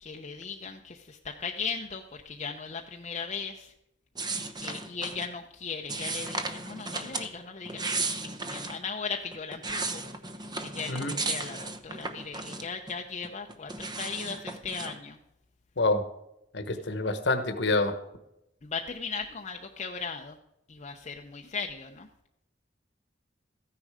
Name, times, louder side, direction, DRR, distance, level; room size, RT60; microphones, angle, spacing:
voice 1, 0.0-3.7 4.4-10.0 10.6-15.2 18.6-20.4 20.7-22.1, left 5 dB, 40° left, 2 dB, 0.7 m, -37 dB
sound 1, 4.2-5.3 5.9-7.3 7.6-8.8 9.3-12.9 13.2-15.0, right 3 dB, 25° right, 0.9 m, -35 dB
voice 2, 10.9-11.2 15.8-16.1 16.5-18.0, left 2 dB, 70° left, 8 dB, 1.2 m, -27 dB
14.0 x 9.9 x 5.0 m, 0.85 s
head